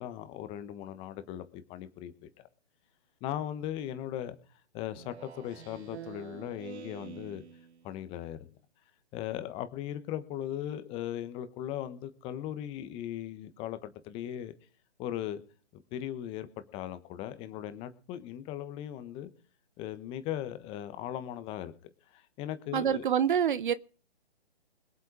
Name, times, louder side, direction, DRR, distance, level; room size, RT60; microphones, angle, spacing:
voice 1, 0.0-2.1 3.2-4.4 4.7-7.4 7.8-8.5 9.1-14.5 15.0-15.4 15.7-19.3 19.8-21.7 22.1-23.0, left 11 dB, 15° left, 1.2 m, -38 dB
Speech synthesizer, 4.9-8.0, right 8 dB, 75° right, 1.0 m, -47 dB
voice 2, 22.7-23.7, right 8 dB, 50° right, 0.8 m, -26 dB
21.0 x 8.3 x 4.9 m
hypercardioid pair, 145°, 33 cm